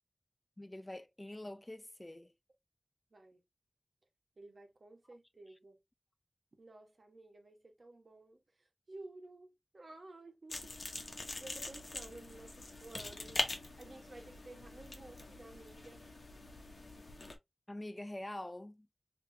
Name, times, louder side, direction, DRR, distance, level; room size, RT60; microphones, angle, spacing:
voice 1, 0.6-2.3 17.7-18.9, left 1 dB, 25° left, 0.4 m, -45 dB
voice 2, 4.4-5.8 6.6-8.4 8.9-10.7 11.1-13.4 13.8-16.1, right 2 dB, 75° right, 1.1 m, -54 dB
sound 1, 10.5-17.4, left 2 dB, 70° left, 0.9 m, -43 dB
3.6 x 3.0 x 2.7 m
wide cardioid pair, 75°, 0 cm